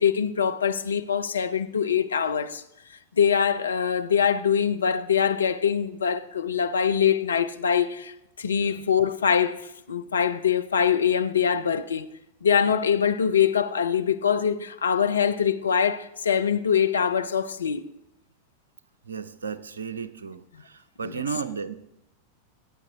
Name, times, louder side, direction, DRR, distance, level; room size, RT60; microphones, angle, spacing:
voice 1, 0.0-2.6 3.2-12.1 12.4-17.8 21.0-21.2, left 7 dB, 70° left, 0.7 m, -23 dB
voice 2, 8.4-8.8 19.1-21.8, right 6 dB, 70° right, 0.7 m, -34 dB
16.0 x 8.8 x 3.8 m
figure-of-eight pair, 90°, 0 cm